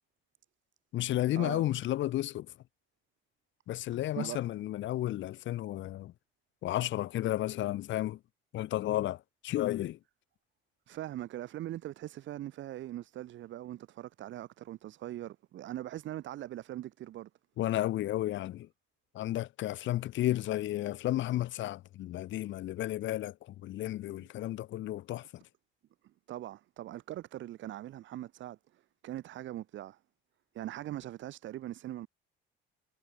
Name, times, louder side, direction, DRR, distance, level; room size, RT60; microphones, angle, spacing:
voice 1, 0.9-2.5 3.7-6.1 6.6-8.2 8.5-10.0 17.6-18.7 19.1-25.4, left 14 dB, 65° left, 1.8 m, -32 dB
voice 2, 10.9-17.3 26.0-30.0 30.5-32.1, right 13 dB, 65° right, 4.0 m, -41 dB
cardioid pair, 120°, 21 cm